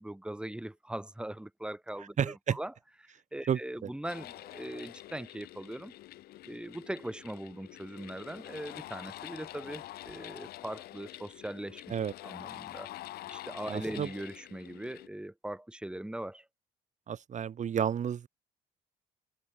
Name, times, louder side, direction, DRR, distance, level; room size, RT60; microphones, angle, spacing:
voice 1, 0.0-2.7 3.0-5.9 6.5-11.8 12.2-12.9 13.3-16.5, right 1 dB, 5° right, 2.5 m, -40 dB
voice 2, 2.2-2.6 3.5-3.9 11.9-12.1 13.7-14.1 17.1-18.3, right 8 dB, 50° right, 2.0 m, -31 dB
sound 1, 4.0-15.1, left 15 dB, 70° left, 1.3 m, -47 dB
supercardioid pair, 80°, 16 cm